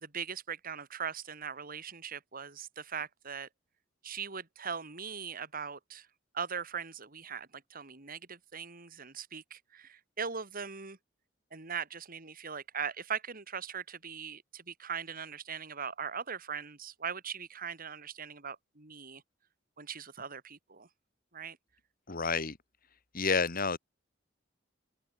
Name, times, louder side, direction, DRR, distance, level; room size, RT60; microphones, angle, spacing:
voice 1, 0.0-3.5 4.0-6.1 6.3-11.0 11.5-19.2 19.8-20.9 21.3-21.6, right 6 dB, 50° right, 2.4 m, -40 dB
voice 2, 22.1-22.6 23.1-23.8, left 4 dB, 50° left, 2.1 m, -29 dB
open air
head